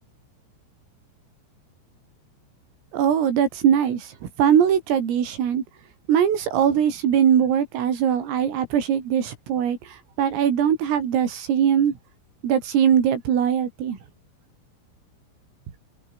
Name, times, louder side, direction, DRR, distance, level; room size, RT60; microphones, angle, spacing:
voice 1, 2.9-5.6 6.1-9.8 10.2-11.9 12.4-14.0, right 8 dB, 80° right, 6.2 m, -21 dB
omnidirectional pair, 5.9 m